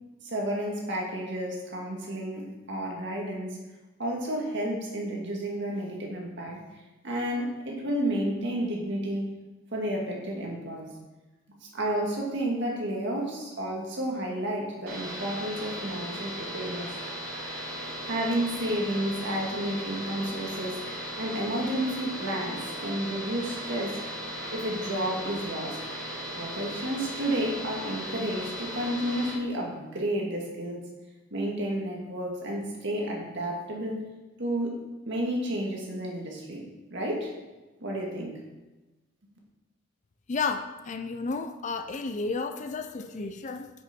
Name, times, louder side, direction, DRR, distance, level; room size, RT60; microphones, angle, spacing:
voice 1, 0.2-3.6 4.0-6.6 7.0-9.3 9.7-10.9 11.7-16.9 18.0-20.8 21.2-24.0 24.5-25.8 26.4-30.9 31.3-34.0 34.4-36.6 36.9-37.4 37.8-38.4, right 1 dB, 55° right, -1 dB, 1.9 m, -31 dB
sound 1, 14.9-29.3, equal, 80° right, 3.1 m, -37 dB
voice 2, 40.3-43.7, left 4 dB, 35° left, 8 dB, 0.4 m, -32 dB
10.0 x 6.1 x 4.4 m, 1.1 s
head